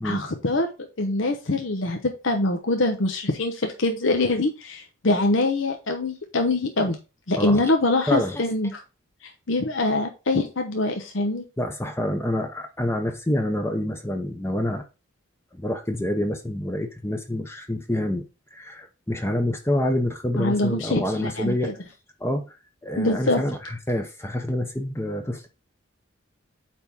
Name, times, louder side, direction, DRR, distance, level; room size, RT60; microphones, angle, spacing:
voice 1, 0.0-7.0 7.3-8.8 9.5-11.4 20.4-21.5 23.0-23.4, left 2 dB, 65° left, 0.9 m, -24 dB
voice 2, 8.1-8.4 11.6-14.8 15.5-18.2 18.5-21.7 22.2-22.6 22.8-25.5, left 1 dB, 10° left, 0.8 m, -27 dB
8.7 x 3.6 x 4.3 m
head